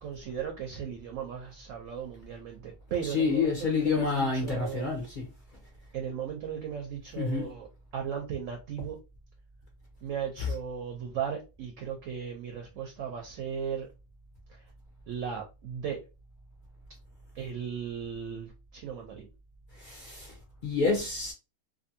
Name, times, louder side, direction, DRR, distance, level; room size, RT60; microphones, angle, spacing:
voice 1, 0.0-4.9 5.9-9.0 10.0-13.9 14.5-14.6 15.1-16.0 17.3-19.3, right 8 dB, 65° right, 0.8 m, -36 dB
voice 2, 3.0-5.3 7.2-7.5 19.8-20.3 20.6-21.3, left 4 dB, 55° left, 0.5 m, -28 dB
2.6 x 2.6 x 2.6 m
omnidirectional pair, 1.6 m